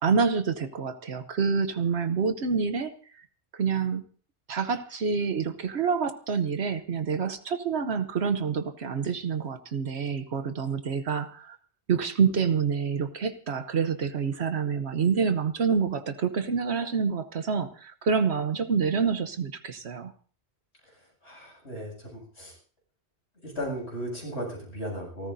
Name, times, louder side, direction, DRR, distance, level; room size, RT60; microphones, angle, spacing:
voice 1, 0.0-3.2 3.5-4.0 4.5-11.6 11.9-20.1, right 6 dB, 70° right, 9 dB, 1.1 m, -27 dB
voice 2, 21.2-22.5 23.4-25.3, equal, 70° left, -1 dB, 7.9 m, -36 dB
28.5 x 14.0 x 2.6 m, 0.42 s
omnidirectional pair, 1.2 m